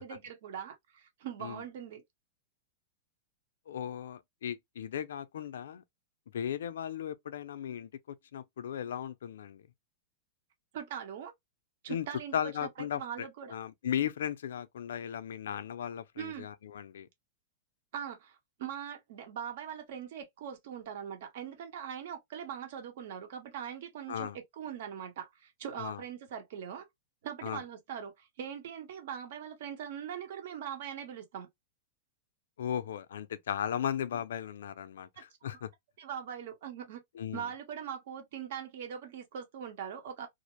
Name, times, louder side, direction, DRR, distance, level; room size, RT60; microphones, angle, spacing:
voice 1, 0.0-2.0 10.7-11.3 11.8-13.5 16.2-16.5 17.9-26.9 27.2-31.5 35.2-35.3 36.0-37.0 37.3-40.3, right 8 dB, 60° right, 0.8 m, -41 dB
voice 2, 3.7-5.8 6.3-7.9 8.3-9.6 11.9-12.1 12.3-17.1 24.1-24.4 25.8-26.0 27.4-27.6 32.6-35.7 37.2-37.5, left 9 dB, 90° left, 0.4 m, -36 dB
2.4 x 2.0 x 2.8 m
supercardioid pair, 160°, 0 cm